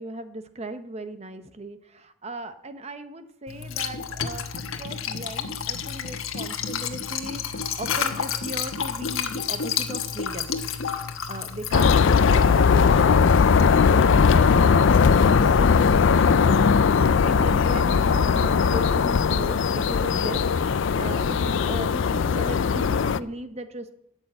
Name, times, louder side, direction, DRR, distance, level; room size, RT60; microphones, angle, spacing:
voice 1, 0.0-10.5 11.3-16.6 17.2-20.4 21.0-23.9, right 2 dB, 30° right, 9 dB, 0.9 m, -37 dB
Liquid, 3.5-14.7, left 7 dB, 80° left, 1.3 m, -31 dB
sound 1, 11.7-23.2, left 5 dB, 65° left, 0.4 m, -19 dB
13.5 x 6.4 x 8.7 m, 0.78 s
head